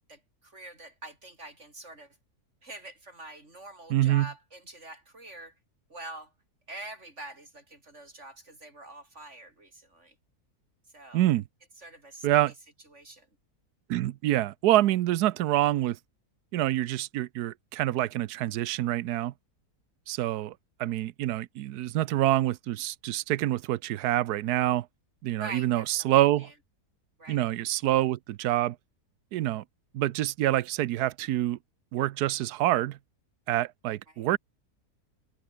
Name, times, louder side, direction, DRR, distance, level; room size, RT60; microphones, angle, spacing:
voice 1, 0.0-2.2 2.6-5.5 5.9-6.3 6.7-10.2 10.9-11.2 11.8-12.3 12.9-13.3 25.4-26.5 27.2-27.4 34.1-34.3, right 2 dB, 45° right, 5.3 m, -45 dB
voice 2, 3.9-4.3 11.1-11.4 12.2-12.5 13.9-16.0 16.5-19.3 20.1-20.5 20.8-24.9 25.2-26.5 27.3-28.8 29.3-29.6 29.9-31.6 31.9-33.0 33.5-34.4, right 14 dB, 90° right, 1.2 m, -26 dB
omnidirectional pair, 1.7 m